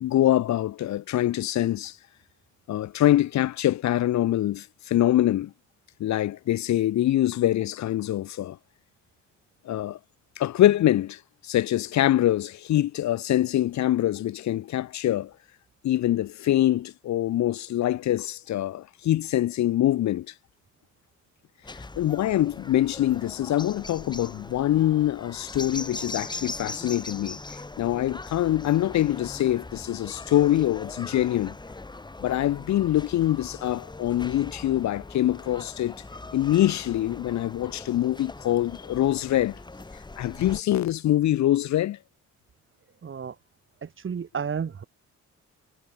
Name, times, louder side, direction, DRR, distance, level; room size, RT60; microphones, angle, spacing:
voice 1, 0.0-2.0 2.7-5.5 6.0-8.6 9.6-10.0 10.4-15.3 15.8-20.3 21.7-27.4 27.8-31.5 32.2-35.9 36.3-39.6 40.2-42.0, left 13 dB, 65° left, 0.9 m, -24 dB
sound 1, 21.6-40.6, left 2 dB, 15° left, 1.5 m, -41 dB
voice 2, 43.0-43.4 43.8-44.8, right 6 dB, 40° right, 2.9 m, -32 dB
cardioid pair, 90°, 30 cm